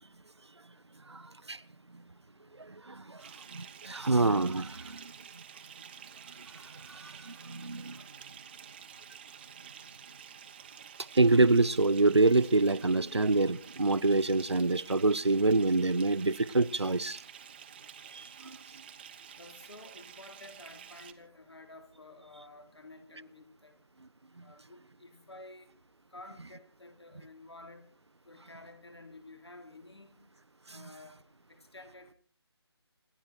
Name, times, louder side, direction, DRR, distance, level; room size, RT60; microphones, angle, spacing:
voice 1, 1.1-1.6 2.6-5.1 6.5-8.0 11.1-17.2 18.1-18.6 30.7-30.8, right 3 dB, 80° right, 0.8 m, -27 dB
Bathtub (filling or washing) / Fill (with liquid), 3.2-21.1, right 8 dB, 20° right, 1.0 m, -50 dB
voice 2, 19.3-23.8 24.4-25.7 26.1-27.9 28.3-30.2 30.7-32.1, left 2 dB, 70° left, 4.0 m, -52 dB
27.5 x 11.5 x 4.5 m
figure-of-eight pair, 155°, 14 cm